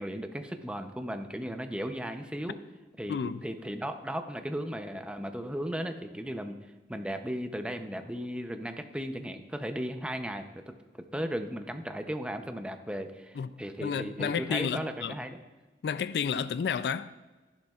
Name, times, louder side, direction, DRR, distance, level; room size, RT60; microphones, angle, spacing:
voice 1, 0.0-2.6 3.0-6.6 6.9-10.6 11.1-15.4, equal, 5° right, 0.6 m, -36 dB
voice 2, 3.1-3.4 13.4-13.5 13.8-15.1 15.8-17.1, left 6 dB, 65° left, 0.3 m, -31 dB
13.5 x 11.5 x 2.4 m
head